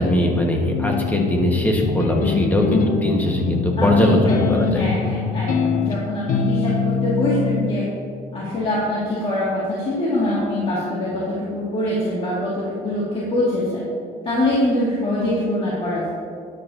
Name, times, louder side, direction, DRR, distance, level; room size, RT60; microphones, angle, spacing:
voice 1, 0.0-4.9, left 1 dB, 10° left, 0 dB, 1.6 m, -20 dB
sound 1, 0.7-7.7, left 5 dB, 50° left, 0.8 m, -23 dB
voice 2, 3.8-7.8 8.3-13.8 14.2-16.1, left 1 dB, 35° left, -8 dB, 2.4 m, -24 dB
13.0 x 10.5 x 2.9 m, 2.3 s
cardioid pair, 140°, 18 cm